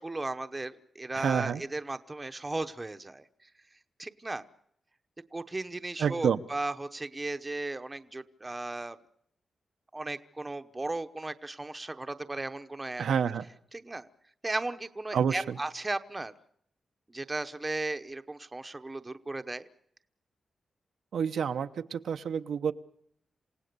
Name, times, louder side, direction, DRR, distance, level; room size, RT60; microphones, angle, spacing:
voice 1, 0.0-3.2 4.0-4.5 5.3-9.0 9.9-13.0 13.7-14.1 14.4-16.3 17.1-19.7, right 2 dB, 15° right, 9 dB, 0.9 m, -36 dB
voice 2, 1.1-1.6 6.0-6.4 13.0-13.4 15.1-15.6 21.1-22.7, right 7 dB, 85° right, 8 dB, 0.9 m, -28 dB
28.0 x 17.5 x 6.8 m, 0.70 s
wide cardioid pair, 160°, 0 cm